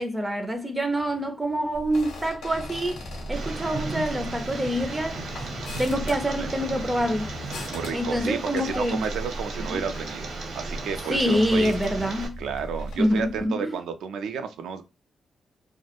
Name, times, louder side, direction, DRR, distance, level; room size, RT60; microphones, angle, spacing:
voice 1, 0.0-3.0 3.3-5.2 5.8-7.3 7.9-9.0 9.7-9.8 11.1-12.4 13.0-13.8, equal, 15° right, 0.4 m, -26 dB
sound 1, 1.7-13.5, equal, 90° left, 0.5 m, -38 dB
sound 2, 2.5-8.0, left 2 dB, 35° left, 0.7 m, -42 dB
Tick, 3.3-12.3, right 3 dB, 70° right, 0.8 m, -36 dB
voice 2, 6.1-6.5 7.7-10.3 10.5-11.7 12.4-14.8, right 6 dB, 90° right, 0.3 m, -32 dB
2.2 x 2.0 x 2.8 m
cardioid pair, 90°, 0 cm